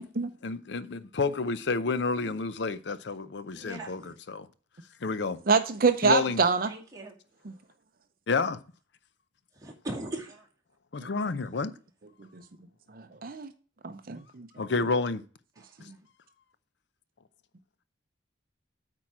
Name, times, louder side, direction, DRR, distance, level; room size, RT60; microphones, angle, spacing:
voice 1, 0.4-4.5 5.0-5.4 6.0-6.4 8.3-8.6 10.9-11.7 14.6-15.2, left 4 dB, 65° left, 0.6 m, -29 dB
voice 2, 3.6-4.1 6.7-7.1 9.6-10.5 15.6-15.7, right 1 dB, 20° right, 2.3 m, -39 dB
voice 3, 5.5-6.7 7.4-7.5 12.2-12.4 12.9-13.5 13.8-14.5 15.9-16.0, right 4 dB, 50° right, 0.6 m, -26 dB
8.6 x 4.5 x 5.9 m
head